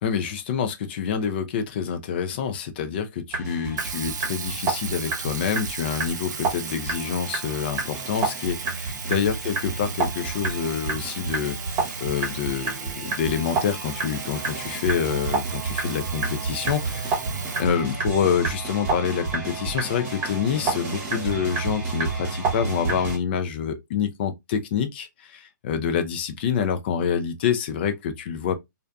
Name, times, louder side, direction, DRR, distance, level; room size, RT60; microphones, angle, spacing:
voice 1, 0.0-17.2 17.6-28.6, left 7 dB, 30° left, 0.4 m, -27 dB
sound 1, 3.3-23.2, right 4 dB, 20° right, 1.0 m, -30 dB
Sink (filling or washing), 3.8-18.5, right 6 dB, 65° right, 0.4 m, -37 dB
2.5 x 2.3 x 2.2 m
hypercardioid pair, 155°, 11 cm